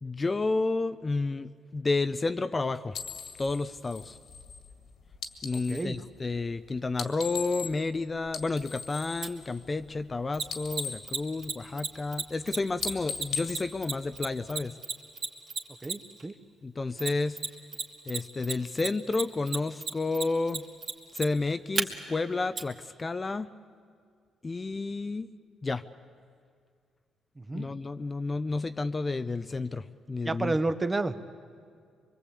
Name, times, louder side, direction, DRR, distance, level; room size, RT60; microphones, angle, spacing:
voice 1, 0.0-3.0 3.4-4.2 5.4-14.8 16.6-17.4 18.1-20.6 21.1-23.5 24.4-25.3 25.6-25.8 27.5-30.6, left 3 dB, 25° left, 11 dB, 0.6 m, -31 dB
sound 1, 2.9-5.9 6.9-8.0 8.2-10.1 10.4-11.9 12.3-12.5 12.8-14.6, left 6 dB, 70° left, 2.0 m, -39 dB
voice 2, 5.5-6.0 15.8-16.3 27.4-27.7 30.2-31.1, right 2 dB, 25° right, 10 dB, 1.1 m, -30 dB
Mechanisms, 9.2-9.3 10.3-16.2 17.0-17.8 18.1-21.8 22.6-22.7, right 5 dB, 50° right, 2.2 m, -32 dB
24.0 x 23.0 x 8.5 m, 2.2 s
cardioid pair, 90°, 0 cm